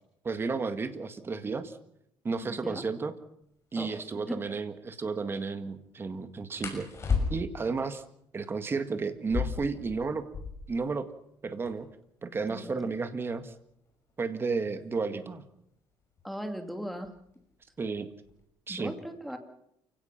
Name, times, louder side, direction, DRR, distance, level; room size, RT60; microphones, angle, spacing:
voice 1, 0.2-1.8 2.2-3.2 3.7-6.9 7.3-8.0 8.3-10.3 10.7-11.1 11.4-11.9 12.2-13.5 14.2-15.4 17.8-18.1 18.7-18.9, right 4 dB, 25° right, 9 dB, 1.8 m, -32 dB
voice 2, 2.4-2.8 3.8-3.9 4.3-4.4 12.5-12.9 16.2-17.1 18.7-19.4, equal, ahead, 6 dB, 2.4 m, -38 dB
sound 1, 3.4-3.5 3.9-4.1 6.6-7.7 9.1-10.8 11.1-11.2 11.4-12.0 12.6-15.2 16.2-16.5 16.9-17.3 17.7-18.4, left 5 dB, 30° left, 6.5 m, -34 dB
29.0 x 17.0 x 5.9 m, 0.76 s
cardioid pair, 130°, 9 cm